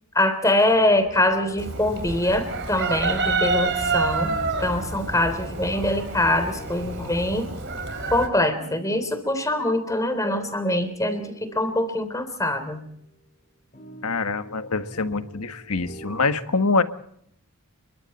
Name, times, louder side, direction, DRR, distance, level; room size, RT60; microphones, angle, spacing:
voice 1, 0.1-7.5 8.1-12.8, left 1 dB, 15° left, 9 dB, 3.4 m, -23 dB
sound 1, 0.6-13.2 13.7-16.2, equal, 40° left, 8.0 m, -45 dB
Chicken rooster, 1.6-8.3, right 3 dB, 55° right, 4.6 m, -28 dB
voice 2, 14.0-16.8, left 3 dB, 85° left, 10 dB, 1.5 m, -24 dB
29.5 x 23.0 x 4.3 m, 0.71 s
head